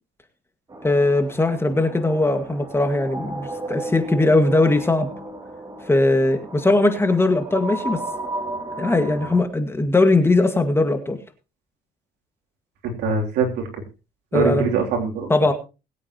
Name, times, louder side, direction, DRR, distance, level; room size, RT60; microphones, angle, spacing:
sound 1, 0.7-9.4, right 1 dB, 20° right, 3.0 m, -34 dB
voice 1, 0.8-5.1 5.9-8.0 8.8-11.2 14.3-14.7 15.3-15.5, left 2 dB, 15° left, 7 dB, 1.9 m, -19 dB
voice 2, 12.8-13.8 14.3-15.3, right 5 dB, 85° right, 2 dB, 3.3 m, -23 dB
21.0 x 8.6 x 3.0 m, 0.30 s
cardioid pair, 110°, 17 cm